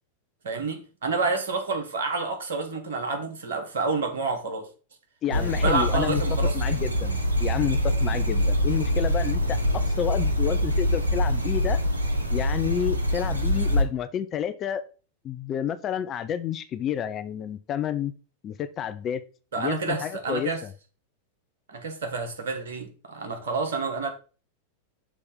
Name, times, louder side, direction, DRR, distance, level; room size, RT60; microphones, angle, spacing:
voice 1, 0.4-4.7 5.3-6.6 19.5-20.6 21.7-24.1, right 4 dB, 65° right, 1.4 m, -29 dB
voice 2, 5.2-6.2 6.5-11.8 12.3-14.8 15.2-18.1 18.4-19.2 19.6-20.7, left 9 dB, 30° left, 0.6 m, -30 dB
sound 1, 5.3-13.8, equal, 80° right, 0.9 m, -24 dB
6.1 x 3.3 x 5.2 m
figure-of-eight pair, 90°, 0 cm